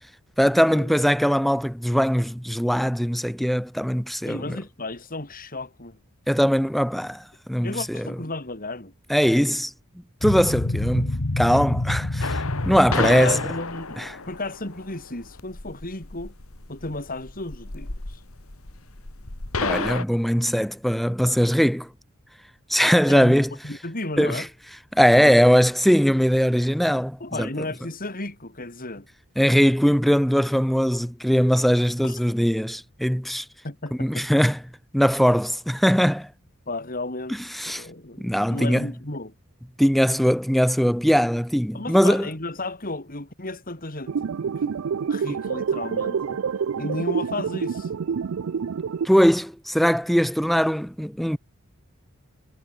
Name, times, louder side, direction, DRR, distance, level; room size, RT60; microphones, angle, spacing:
voice 1, 0.4-4.6 6.3-8.1 9.1-9.7 10.2-13.4 14.0-14.2 19.6-21.9 22.7-23.5 24.2-24.5 24.9-27.5 29.4-33.4 34.0-34.6 34.9-36.3 37.5-37.9 38.2-38.9 39.8-42.3 49.0-51.4, equal, ahead, 0.8 m, -21 dB
voice 2, 4.2-6.0 7.6-8.9 12.7-16.3 16.7-18.2 23.1-23.4 23.6-24.5 27.2-29.1 32.0-32.2 33.6-34.3 36.7-37.4 37.7-39.3 41.7-44.7 45.0-46.4 46.8-47.9, left 2 dB, 40° left, 4.1 m, -33 dB
sound 1, 10.2-13.6, left 2 dB, 55° left, 1.2 m, -27 dB
sound 2, 12.2-20.0, left 4 dB, 75° left, 2.4 m, -32 dB
sound 3, 44.1-49.1, right 6 dB, 65° right, 0.4 m, -27 dB
head